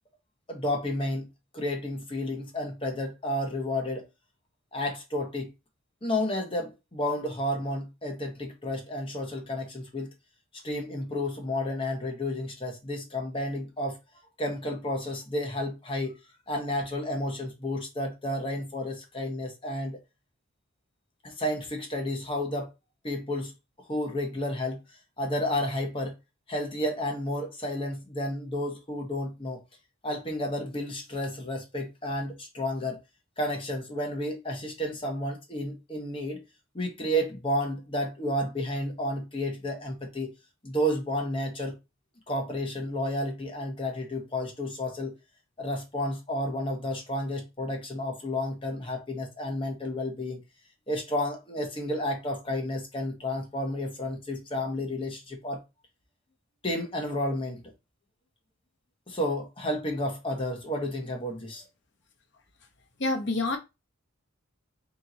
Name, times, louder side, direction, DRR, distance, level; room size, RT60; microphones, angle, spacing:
voice 1, 0.5-1.3 1.5-4.0 4.7-5.5 6.0-10.1 10.6-14.0 14.4-16.2 16.5-20.0 21.2-22.7 23.0-23.5 23.9-24.8 25.2-26.2 26.5-29.6 30.0-33.0 33.4-36.4 36.7-40.3 40.6-41.8 42.3-45.2 45.6-50.4 50.9-55.6 56.6-57.6 59.1-61.6, left 1 dB, 25° left, 1.0 m, -31 dB
voice 2, 63.0-63.6, left 2 dB, 55° left, 0.8 m, -27 dB
3.5 x 3.0 x 3.9 m
head